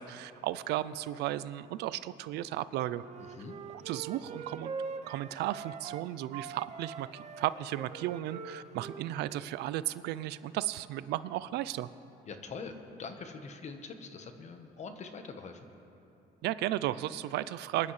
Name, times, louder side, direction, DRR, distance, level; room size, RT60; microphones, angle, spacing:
voice 1, 0.0-3.0 3.9-4.7 5.1-11.9 16.4-17.9, right 14 dB, 80° right, 16 dB, 0.4 m, -34 dB
Wind instrument woodwind instrument, 3.0-6.0 6.3-9.6, right 5 dB, 40° right, 0.8 m, -43 dB
voice 2, 3.2-3.5 12.2-15.7, left 4 dB, 45° left, 6 dB, 1.2 m, -44 dB
23.5 x 10.5 x 3.2 m, 2.9 s
cardioid pair, 110°, 17 cm